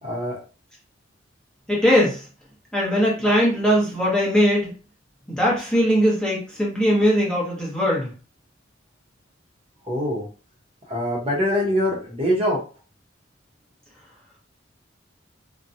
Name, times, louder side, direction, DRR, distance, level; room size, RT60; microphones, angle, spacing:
voice 1, 0.0-0.4 9.9-10.3 10.9-12.6, equal, 30° right, -2 dB, 0.8 m, -23 dB
voice 2, 1.7-2.2 2.7-4.7 5.3-8.1, equal, 5° left, -5 dB, 0.9 m, -20 dB
2.8 x 2.2 x 2.6 m, 0.36 s
head